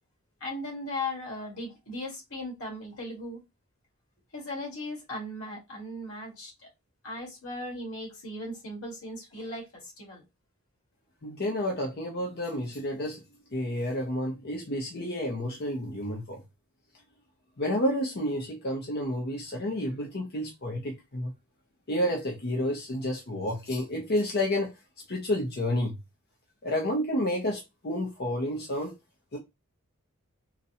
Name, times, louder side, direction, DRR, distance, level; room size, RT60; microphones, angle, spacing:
voice 1, 0.4-3.4 4.3-6.7 7.0-10.2, left 1 dB, 75° left, 1.8 m, -37 dB
voice 2, 11.2-13.2 13.5-16.4 17.6-21.3 21.9-24.7 25.1-25.9 26.6-28.9 29.3-29.4, left 1 dB, 45° left, 0.6 m, -30 dB
3.9 x 2.2 x 2.7 m
head